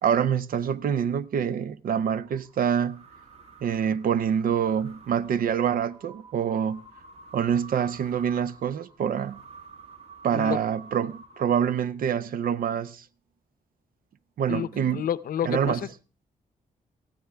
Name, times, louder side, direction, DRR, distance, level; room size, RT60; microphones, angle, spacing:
voice 1, 0.0-3.0 3.6-6.8 7.3-9.4 10.2-13.0 14.4-15.1 15.4-15.8, right 8 dB, 65° right, 0.6 m, -26 dB
sound 1, 2.2-12.0, right 4 dB, 45° right, 2.0 m, -50 dB
voice 2, 14.5-15.9, left 10 dB, 70° left, 0.6 m, -30 dB
18.5 x 13.0 x 3.4 m
cardioid pair, 100°, 15 cm